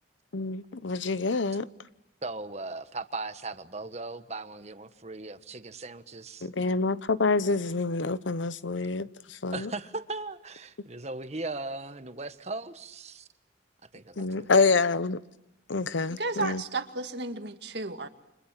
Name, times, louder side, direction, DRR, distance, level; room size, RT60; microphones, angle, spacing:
voice 1, 0.3-1.7 6.4-9.7 14.2-15.2 15.7-16.6, left 3 dB, 85° left, 0.9 m, -27 dB
voice 2, 2.2-6.5 9.5-13.3 13.9-14.5, right 3 dB, 35° right, 1.4 m, -38 dB
voice 3, 16.1-18.1, right 3 dB, 65° right, 2.0 m, -33 dB
30.0 x 26.5 x 7.6 m
head